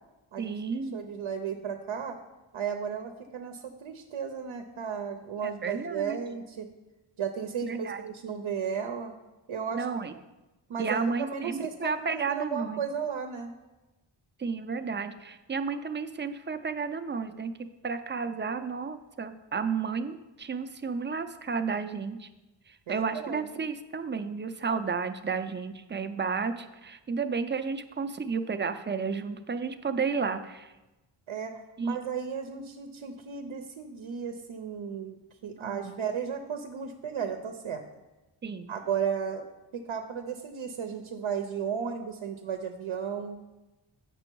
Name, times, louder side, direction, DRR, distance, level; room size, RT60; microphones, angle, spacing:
voice 1, 0.4-1.0 5.4-6.2 7.7-8.0 9.7-10.1 10.8-12.8 14.4-17.5 17.8-22.3 22.7-30.7 31.8-32.0 35.6-36.0 38.4-38.7, right 5 dB, 25° right, 10 dB, 0.3 m, -32 dB
voice 2, 0.9-2.2 2.5-6.7 7.2-9.1 9.5-9.9 10.7-13.5 22.9-23.6 31.3-35.2 35.4-37.8 38.7-39.5 39.7-43.4, right 7 dB, 90° right, 6 dB, 0.7 m, -34 dB
7.7 x 6.1 x 4.5 m, 1.1 s
wide cardioid pair, 140°, 46 cm